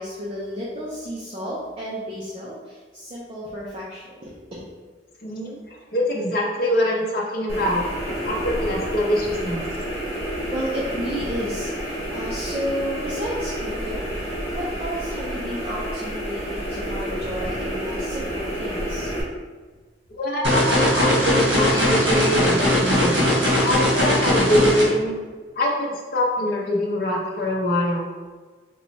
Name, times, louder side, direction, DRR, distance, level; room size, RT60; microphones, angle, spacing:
voice 1, 0.0-4.6 10.5-19.2, equal, 30° right, -6 dB, 0.5 m, -32 dB
voice 2, 5.2-7.9 8.2-9.6 20.2-23.3 23.5-25.2 25.6-28.1, left 1 dB, 50° left, -2 dB, 0.6 m, -24 dB
sound 1, 7.5-19.2, equal, 35° left, 1.1 m, -29 dB
sound 2, 20.4-24.8, equal, 80° right, 1.1 m, -19 dB
3.0 x 2.2 x 4.0 m, 1.4 s
head